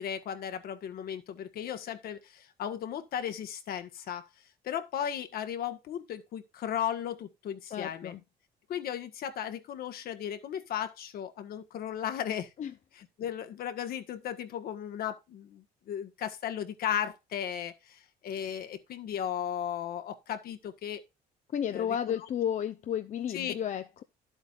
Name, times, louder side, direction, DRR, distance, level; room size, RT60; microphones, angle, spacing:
voice 1, 0.0-4.3 4.6-8.2 8.7-12.5 12.9-21.0 21.7-22.2 23.3-23.5, left 9 dB, 65° left, 1.4 m, -36 dB
voice 2, 7.7-8.2 12.6-12.7 21.5-24.0, left 9 dB, 45° left, 0.7 m, -32 dB
11.5 x 8.0 x 2.5 m
cardioid pair, 110°, 17 cm